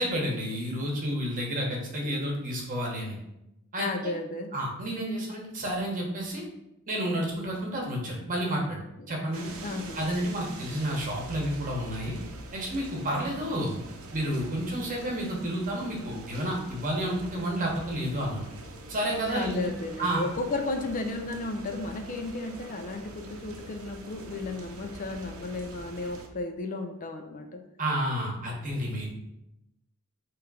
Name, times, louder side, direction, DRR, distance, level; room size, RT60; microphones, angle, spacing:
voice 1, 0.0-3.2 3.7-4.1 4.5-6.5 6.9-8.8 9.1-9.5 9.9-12.2 12.5-13.8 14.1-18.4 18.9-19.7 20.0-20.2 27.8-29.1, right 1 dB, 40° right, -1 dB, 1.1 m, -30 dB
voice 2, 3.8-4.5 9.6-10.1 19.3-27.6, left 2 dB, 35° left, 5 dB, 0.4 m, -34 dB
sound 1, 9.3-26.3, right 2 dB, 75° right, 0.7 m, -44 dB
3.5 x 3.1 x 4.9 m, 0.87 s
head